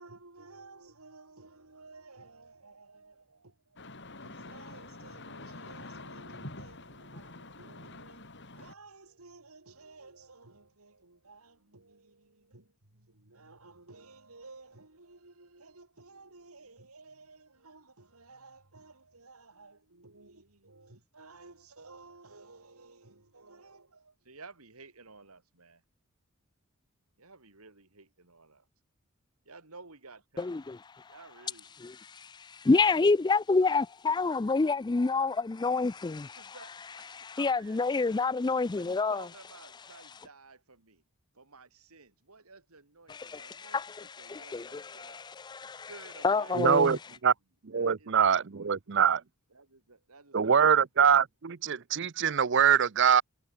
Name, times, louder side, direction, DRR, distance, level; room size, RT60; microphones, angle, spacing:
voice 1, 0.0-3.9 4.2-25.8 27.2-28.7 29.4-30.6 31.0-31.7 36.4-38.2 38.7-41.0 41.3-45.3 45.9-47.2 47.7-49.0 49.5-50.9, right 3 dB, 85° right, 3.7 m, -54 dB
sound 1, 3.8-8.7, left 2 dB, 55° left, 5.8 m, -46 dB
voice 2, 30.4-30.8 32.1-36.5 37.1-39.2 43.1-45.9 46.2-47.0, left 3 dB, 20° left, 0.3 m, -28 dB
voice 3, 46.5-47.3 47.6-49.2 50.3-53.2, right 7 dB, 55° right, 0.6 m, -24 dB
head